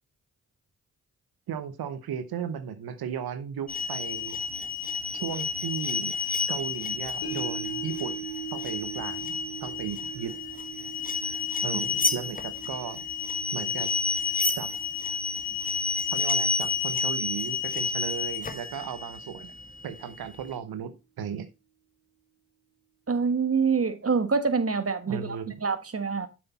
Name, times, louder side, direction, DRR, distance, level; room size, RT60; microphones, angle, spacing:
voice 1, 1.5-4.4 5.1-6.1 6.5-8.3 8.5-10.4 11.6-13.0 13.5-13.9 14.6-14.7 16.1-19.5 19.8-21.5 25.1-25.6, right 8 dB, 75° right, 1.0 m, -36 dB
sound 1, 3.7-20.5, left 4 dB, 20° left, 1.5 m, -31 dB
sound 2, 7.2-17.6 18.0-18.1, right 8 dB, 70° left, 3.4 m, -42 dB
voice 2, 23.1-26.3, right 5 dB, 40° right, 1.4 m, -26 dB
7.7 x 6.2 x 4.1 m
supercardioid pair, 40°, 37 cm